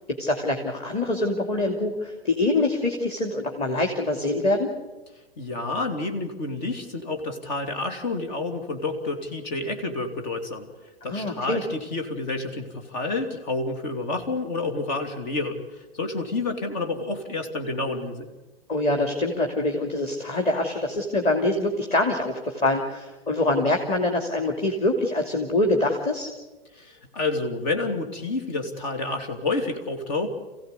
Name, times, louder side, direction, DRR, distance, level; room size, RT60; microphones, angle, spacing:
voice 1, 0.1-4.7 11.0-11.6 18.7-26.3, left 2 dB, 20° left, 2 dB, 2.7 m, -24 dB
voice 2, 5.4-10.7 11.0-15.6 15.9-18.3 26.8-30.3, left 3 dB, 50° left, 6 dB, 3.0 m, -29 dB
28.5 x 16.0 x 8.3 m, 1.1 s
figure-of-eight pair, 100°, 29 cm